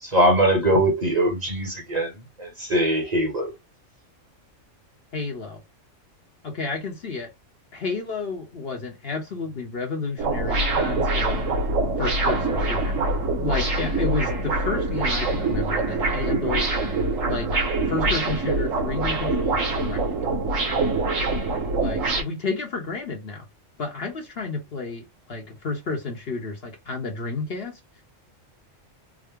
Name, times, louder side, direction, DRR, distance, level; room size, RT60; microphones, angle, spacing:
voice 1, 0.0-2.1 2.4-3.5, right 1 dB, 35° right, 1.2 m, -21 dB
voice 2, 5.1-5.6 6.4-7.3 7.7-11.5 12.0-13.0 13.4-16.7 17.3-17.5 17.9-20.3 21.8-23.4 23.8-27.8, left 4 dB, 55° left, 1.1 m, -31 dB
sound 1, 10.2-22.2, right 2 dB, 80° right, 1.6 m, -24 dB
3.7 x 2.1 x 3.4 m
omnidirectional pair, 1.3 m